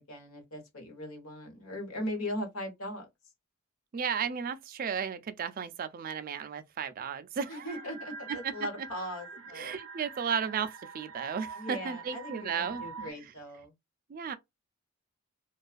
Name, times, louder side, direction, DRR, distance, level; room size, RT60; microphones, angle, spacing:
voice 1, 0.0-3.1 7.5-9.7 11.5-13.7, left 1 dB, 80° left, 1.2 m, -39 dB
voice 2, 3.9-7.7 8.3-8.5 9.5-13.3 14.1-14.4, right 7 dB, 40° right, 0.3 m, -34 dB
sound 1, 7.7-13.1, right 5 dB, 90° right, 0.7 m, -45 dB
2.3 x 2.3 x 2.4 m
head